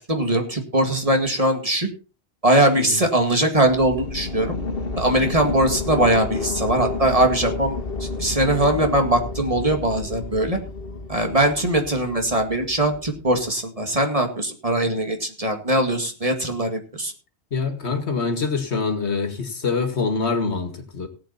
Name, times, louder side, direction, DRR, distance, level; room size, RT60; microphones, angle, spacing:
voice 1, 0.0-1.9 2.4-4.6 5.0-10.6 11.1-17.1, right 1 dB, 35° right, 4 dB, 2.2 m, -21 dB
sound 1, 3.6-13.5, left 3 dB, 60° left, 1.8 m, -31 dB
voice 2, 17.5-21.1, left 4 dB, 80° left, 7 dB, 2.2 m, -25 dB
18.0 x 8.4 x 4.2 m, 0.34 s
omnidirectional pair, 1.1 m